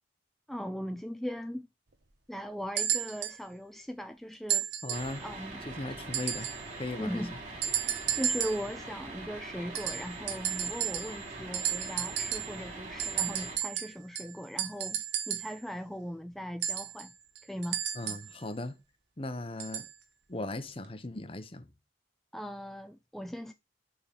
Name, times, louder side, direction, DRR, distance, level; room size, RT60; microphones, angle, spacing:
voice 1, 0.5-1.7 2.3-4.7 5.2-5.6 7.0-7.3 7.7-17.1 17.4-17.8 22.3-23.5, equal, ahead, 0.3 m, -39 dB
sound 1, 2.8-3.4 4.5-5.2 6.1-6.7 7.6-8.7 9.7-11.3 11.5-12.6 13.0-15.6 16.6-18.3 19.6-19.9 20.8-20.9, right 9 dB, 70° right, 1.2 m, -33 dB
voice 2, 4.8-5.2 5.6-7.3 17.9-18.8 19.2-19.9 20.3-21.7, left 2 dB, 30° left, 0.8 m, -38 dB
sound 2, 4.9-13.6, right 2 dB, 40° right, 3.2 m, -43 dB
7.1 x 3.9 x 5.2 m
head